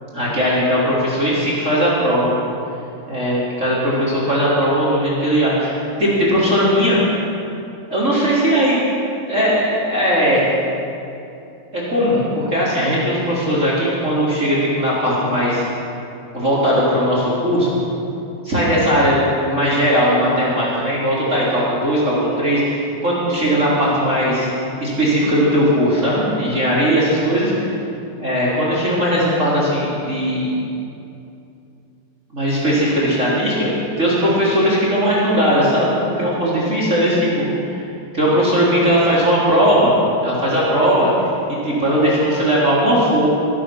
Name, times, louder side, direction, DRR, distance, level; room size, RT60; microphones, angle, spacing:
voice 1, 0.1-2.3 3.1-7.1 7.9-8.8 9.3-10.4 11.7-15.6 16.3-17.7 18.4-24.5 24.8-27.5 28.2-30.5 32.3-37.8 38.1-39.9 40.2-41.1 41.5-43.3, equal, 20° right, -7 dB, 3.5 m, -18 dB
23.5 x 9.2 x 6.3 m, 2.7 s
omnidirectional pair, 4.6 m